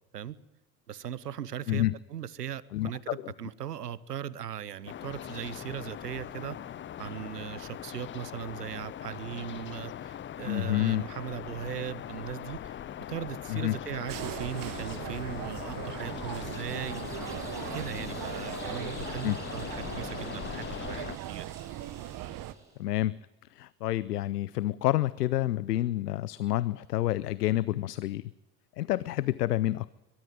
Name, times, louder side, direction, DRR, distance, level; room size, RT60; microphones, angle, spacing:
voice 1, 0.9-6.6 7.0-12.7 13.1-17.3 17.7-21.6, right 9 dB, 90° right, 20 dB, 0.8 m, -39 dB
voice 2, 2.7-3.2 10.4-11.0 13.5-13.8 19.2-19.4 22.8-23.2 23.5-28.2 28.8-29.9, left 15 dB, 85° left, 19 dB, 0.6 m, -28 dB
sound 1, 4.9-21.2, left 10 dB, 25° left, 0.6 m, -40 dB
sound 2, 14.1-22.5, right 13 dB, 45° right, 1.1 m, -39 dB
sound 3, 16.5-22.8, right 2 dB, 5° right, 7.4 m, -50 dB
22.5 x 13.0 x 9.1 m, 0.99 s
hypercardioid pair, 70°, 46 cm